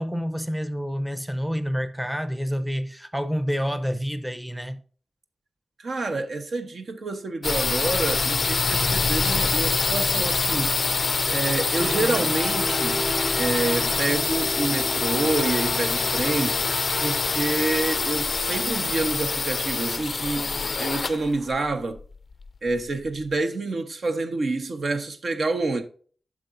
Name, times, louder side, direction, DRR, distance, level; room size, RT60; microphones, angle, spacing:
voice 1, 0.0-4.8, equal, 5° right, 0.7 m, -28 dB
voice 2, 5.8-13.0 13.4-16.6 17.0-20.5 20.8-22.0 22.6-25.8, right 3 dB, 70° right, 1.1 m, -28 dB
sound 1, 7.4-23.1, left 4 dB, 55° left, 0.3 m, -25 dB
sound 2, 11.8-18.7, equal, 45° right, 2.8 m, -35 dB
9.6 x 6.3 x 2.6 m
cardioid pair, 65°, 0 cm